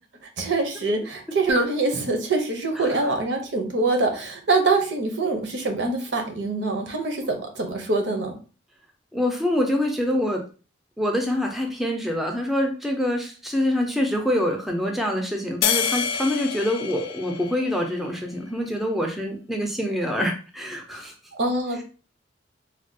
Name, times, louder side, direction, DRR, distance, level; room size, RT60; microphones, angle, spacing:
voice 1, 0.4-8.3 21.3-21.8, right 3 dB, 65° right, 4 dB, 0.7 m, -24 dB
voice 2, 2.8-3.1 9.1-10.5 11.0-21.1, left 1 dB, ahead, 2 dB, 0.4 m, -25 dB
sound 1, 15.6-18.2, left 8 dB, 80° left, 0.3 m, -27 dB
3.3 x 2.2 x 2.6 m, 0.36 s
head